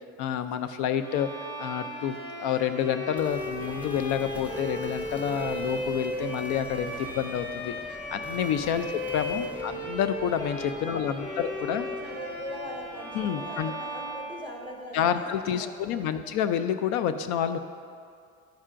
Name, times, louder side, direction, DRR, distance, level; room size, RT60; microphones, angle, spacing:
voice 1, 0.2-1.3 1.6-7.7 8.1-11.9 13.1-13.7 14.9-17.6, left 9 dB, 75° left, 10 dB, 0.4 m, -29 dB
Bowed string instrument, 1.0-15.1, equal, 50° left, 1.9 m, -36 dB
sound 1, 3.2-14.5, right 2 dB, 5° right, 0.3 m, -48 dB
voice 2, 9.3-9.7 10.8-16.3, left 1 dB, 15° left, -2 dB, 1.3 m, -41 dB
11.5 x 5.4 x 2.5 m, 2.3 s
cardioid pair, 115°, 30 cm